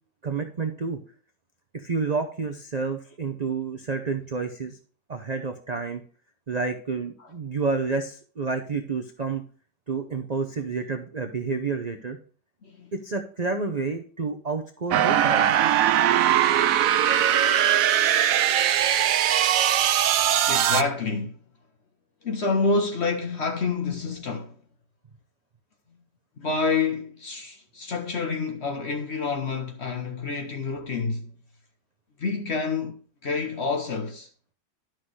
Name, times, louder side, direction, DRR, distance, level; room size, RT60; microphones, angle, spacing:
voice 1, 0.2-1.0 1.7-4.8 5.1-6.0 6.5-9.4 9.9-12.2 12.9-15.5, right 4 dB, 50° right, 0.5 m, -29 dB
sound 1, 14.9-20.8, right 10 dB, 70° right, 0.8 m, -20 dB
voice 2, 20.5-21.4 22.2-24.6 26.4-31.3 32.2-34.3, left 4 dB, 50° left, 0.9 m, -28 dB
11.5 x 5.9 x 3.2 m
omnidirectional pair, 1.9 m